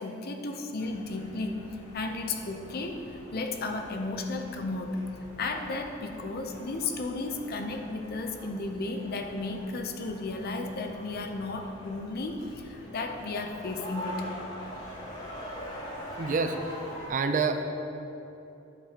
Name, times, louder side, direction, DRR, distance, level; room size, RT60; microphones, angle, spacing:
voice 1, 0.0-1.6 1.9-5.1 5.4-14.3, left 3 dB, 50° left, 4 dB, 0.6 m, -34 dB
sound 1, 0.8-17.1, equal, 35° left, 1.7 m, -44 dB
voice 2, 16.2-16.8 17.1-17.6, right 4 dB, 40° right, 6 dB, 0.4 m, -28 dB
9.3 x 6.9 x 2.9 m, 3.0 s
head